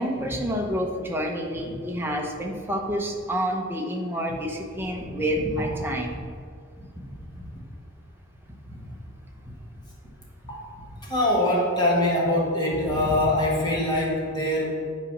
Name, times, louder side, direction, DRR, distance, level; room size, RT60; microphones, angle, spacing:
voice 1, 0.0-6.2, equal, 10° right, 1 dB, 0.8 m, -28 dB
voice 2, 5.4-5.7 7.3-7.5 10.5-10.7 11.0-14.8, left 1 dB, 20° left, -3 dB, 1.6 m, -24 dB
8.9 x 4.1 x 5.9 m, 2.1 s
head